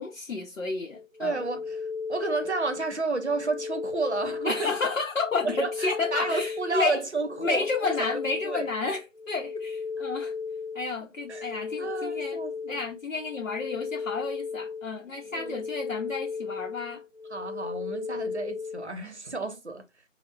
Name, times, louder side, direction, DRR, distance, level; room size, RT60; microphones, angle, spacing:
voice 1, 0.0-1.4 4.4-7.0 7.4-10.3 10.7-12.4 12.7-17.0, left 4 dB, 75° left, 0.7 m, -31 dB
sound 1, 0.9-18.9, left 5 dB, 55° left, 1.0 m, -35 dB
voice 2, 1.2-1.8 2.1-4.7 5.4-8.2 8.4-8.7 11.3-12.9 15.3-15.7 17.3-19.8, right 3 dB, 60° right, 0.6 m, -31 dB
4.1 x 2.0 x 2.2 m
figure-of-eight pair, 180°, 40 cm